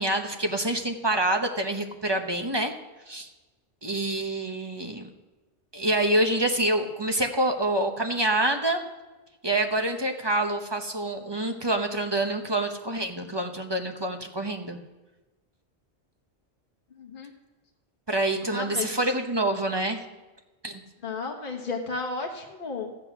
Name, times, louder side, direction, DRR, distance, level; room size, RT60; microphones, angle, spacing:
voice 1, 0.0-2.7 3.1-3.3 3.8-5.1 5.7-8.8 9.4-14.8 18.1-20.0 20.6-20.8, right 1 dB, 25° right, 4 dB, 0.9 m, -26 dB
voice 2, 16.9-17.3 18.4-19.0 21.0-23.1, left 4 dB, 50° left, 0 dB, 1.3 m, -33 dB
14.0 x 7.6 x 5.9 m, 1.2 s
omnidirectional pair, 1.2 m